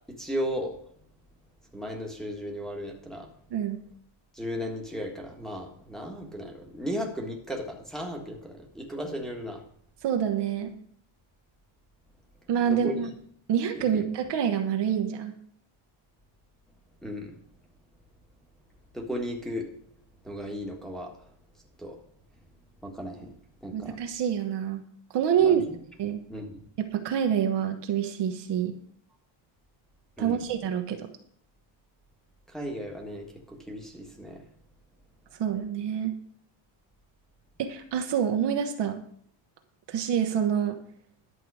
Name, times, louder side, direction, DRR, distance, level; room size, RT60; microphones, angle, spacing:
voice 1, 0.2-0.8 1.7-3.3 4.3-9.6 12.6-13.1 13.7-14.0 17.0-17.3 18.9-19.7 20.2-21.1 21.8-22.0 22.8-23.3 23.6-24.0 25.4-25.8 26.3-26.6 30.2-30.4 32.5-34.4, equal, ahead, -1 dB, 1.5 m, -35 dB
voice 2, 10.0-10.7 12.5-13.1 13.5-15.3 23.7-24.8 25.1-25.6 26.0-26.2 26.8-28.7 30.2-31.1 35.4-36.1 37.6-39.0 39.9-40.8, right 8 dB, 55° right, 6 dB, 1.1 m, -27 dB
11.0 x 7.5 x 4.8 m, 0.63 s
cardioid pair, 155°, 50 cm